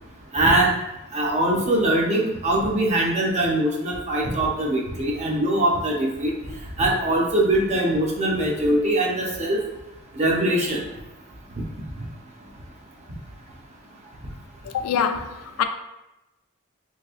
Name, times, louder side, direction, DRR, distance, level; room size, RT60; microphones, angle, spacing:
voice 1, 0.3-0.7 1.1-6.3 6.8-9.6 10.1-10.8, right 1 dB, 30° right, -2 dB, 0.6 m, -22 dB
voice 2, 14.7-15.6, left 7 dB, 80° left, 7 dB, 0.3 m, -24 dB
3.3 x 3.2 x 2.4 m, 0.98 s
head